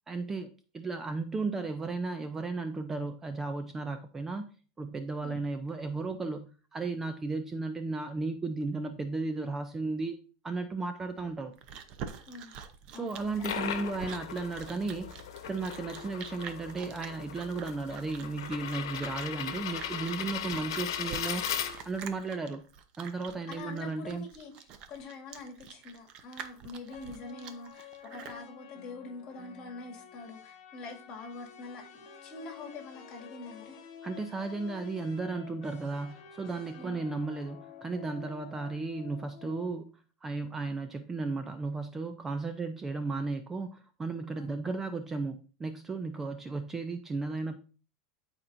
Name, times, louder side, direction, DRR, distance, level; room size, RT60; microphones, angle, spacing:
voice 1, 0.1-4.5 4.8-10.2 10.4-11.6 12.9-21.5 21.8-22.6 23.0-24.3 34.0-39.9 40.2-47.6, right 3 dB, 15° right, 8 dB, 0.4 m, -35 dB
Chewing mastication, 11.2-28.4, right 7 dB, 40° right, 0.8 m, -46 dB
voice 2, 12.9-13.5 23.5-33.8 36.7-37.0 44.3-44.5, left 3 dB, 35° left, 1 dB, 2.0 m, -45 dB
sound 1, 13.2-22.1, left 9 dB, 85° left, 1.0 m, -38 dB
sound 2, 26.9-39.7, left 8 dB, 50° left, 1.4 m, -50 dB
13.0 x 4.4 x 2.6 m, 0.37 s
supercardioid pair, 150°, 2 cm